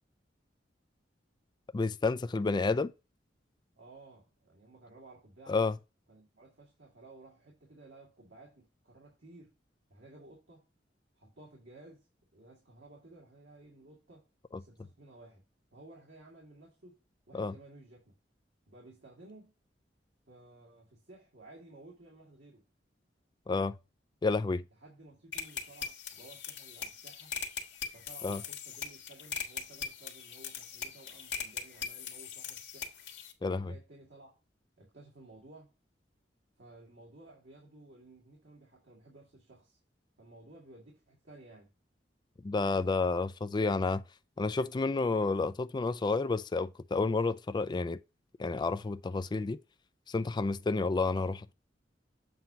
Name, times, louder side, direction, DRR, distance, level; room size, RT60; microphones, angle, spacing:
voice 1, 1.7-2.9 5.5-5.7 17.3-17.5 23.5-23.7 24.2-24.6 28.2-28.4 33.4-33.7 42.4-44.0 44.4-48.0 48.4-49.6 50.1-51.5, left 3 dB, 25° left, 0.3 m, -30 dB
voice 2, 3.8-5.6 6.1-9.5 9.9-10.7 11.1-12.1 12.3-14.3 14.5-15.4 15.7-17.0 17.3-18.1 18.7-19.5 20.3-22.7 24.8-27.4 27.9-32.9 33.5-34.3 34.8-35.7 36.6-39.8 40.2-41.7, right 2 dB, 75° right, 2.2 m, -55 dB
sound 1, 25.3-33.3, left 7 dB, 80° left, 1.5 m, -41 dB
7.8 x 2.9 x 5.5 m
head